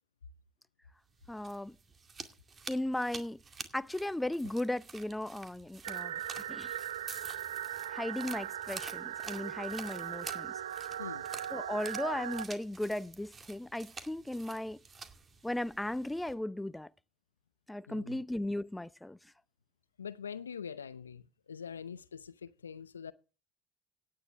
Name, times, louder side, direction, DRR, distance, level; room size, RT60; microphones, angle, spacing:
sound 1, 1.1-16.3, right 5 dB, 35° right, 2.2 m, -49 dB
voice 1, 1.3-1.8 2.7-3.4 3.7-6.2 6.5-6.7 7.9-10.6 11.5-14.8 15.4-16.9 17.7-19.2, left 1 dB, 10° left, 0.6 m, -36 dB
sound 2, 5.8-12.5, right 10 dB, 80° right, 0.8 m, -39 dB
voice 2, 17.9-18.2 20.0-23.1, left 7 dB, 90° left, 0.6 m, -44 dB
17.5 x 9.7 x 3.4 m
hypercardioid pair, 60°, 0 cm